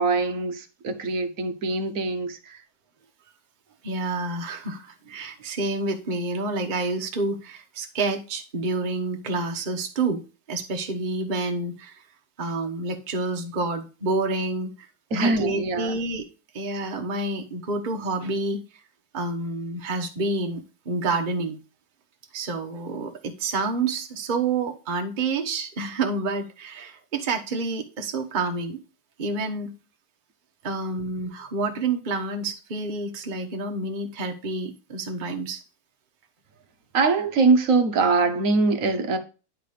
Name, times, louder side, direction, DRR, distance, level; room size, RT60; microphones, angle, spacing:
voice 1, 0.0-2.6 15.1-16.0 36.9-39.2, right 3 dB, 50° right, 1.1 m, -23 dB
voice 2, 3.8-10.2 10.5-12.0 12.4-14.7 15.1-16.3 16.5-18.6 19.1-21.6 22.3-28.8 29.2-29.8 30.6-35.6, right 3 dB, 30° right, 1.0 m, -28 dB
10.0 x 3.7 x 5.0 m
omnidirectional pair, 2.2 m